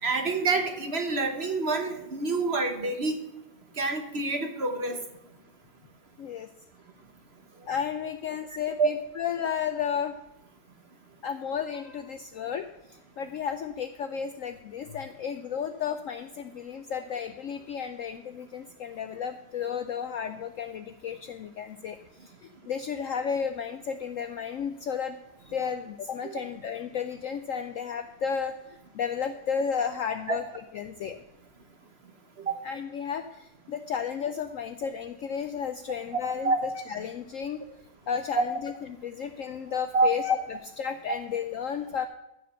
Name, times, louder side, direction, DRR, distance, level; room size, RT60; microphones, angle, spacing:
voice 1, 0.0-3.2 3.8-5.0 8.8-8.9 26.2-26.4 30.3-30.4 32.4-32.6 36.4-36.6 38.3-38.4 39.9-40.1, right 3 dB, 45° right, 5 dB, 1.1 m, -27 dB
voice 2, 6.2-6.5 7.7-10.2 11.2-30.4 30.7-31.2 32.6-36.5 36.9-37.6 38.1-38.7 39.0-42.1, left 7 dB, 70° left, 9 dB, 0.8 m, -33 dB
14.0 x 5.1 x 6.8 m, 0.88 s
omnidirectional pair, 1.8 m